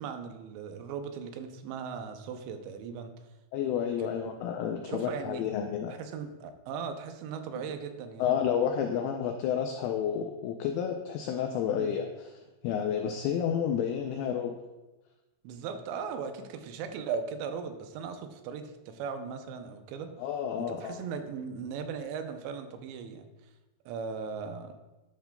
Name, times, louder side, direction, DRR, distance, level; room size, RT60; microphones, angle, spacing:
voice 1, 0.0-3.1 4.0-4.1 4.8-5.4 5.9-8.3 11.7-11.9 15.4-20.1 20.6-23.3 23.9-24.7, right 6 dB, 85° right, 7 dB, 2.9 m, -38 dB
voice 2, 3.5-6.0 8.2-12.3 12.6-14.5 20.2-21.0, left 8 dB, 85° left, 4 dB, 2.2 m, -30 dB
11.5 x 5.9 x 2.2 m, 1.1 s
omnidirectional pair, 5.0 m